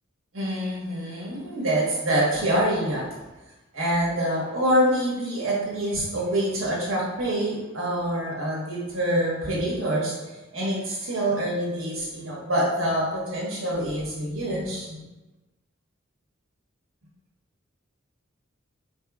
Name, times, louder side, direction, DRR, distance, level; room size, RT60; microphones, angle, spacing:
voice 1, 0.3-3.0 3.7-10.1 10.5-15.0, right 1 dB, 85° right, -5 dB, 1.2 m, -26 dB
4.0 x 2.9 x 2.4 m, 1.1 s
head